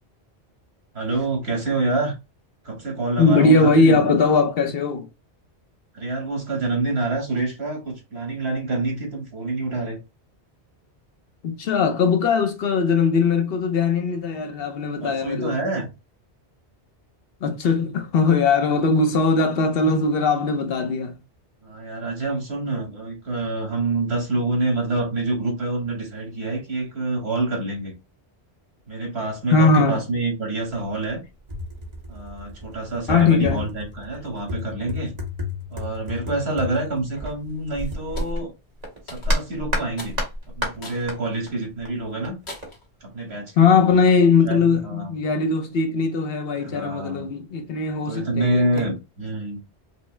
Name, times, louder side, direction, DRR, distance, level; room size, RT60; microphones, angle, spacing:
voice 1, 0.9-2.2 2.6-4.1 5.9-10.0 15.0-15.9 21.6-27.9 28.9-31.2 32.1-35.1 35.7-38.5 39.1-40.2 40.5-42.4 43.0-43.7 44.4-45.1 46.6-47.3 48.1-49.6, right 2 dB, 70° right, 2.0 m, -27 dB
voice 2, 3.2-5.1 11.4-15.6 17.4-21.2 29.5-30.0 33.1-33.7 43.6-48.9, left 4 dB, 65° left, 0.8 m, -20 dB
sound 1, 30.7-30.8 31.1-38.4 38.8-41.2 41.5-42.7, left 1 dB, 40° right, 1.2 m, -31 dB
sound 2, 38.2-38.4 39.1-39.5 40.0-40.2 40.8-41.1 41.6-41.7 42.5-42.9, left 1 dB, 80° left, 1.6 m, -39 dB
5.3 x 2.0 x 3.2 m
omnidirectional pair, 1.1 m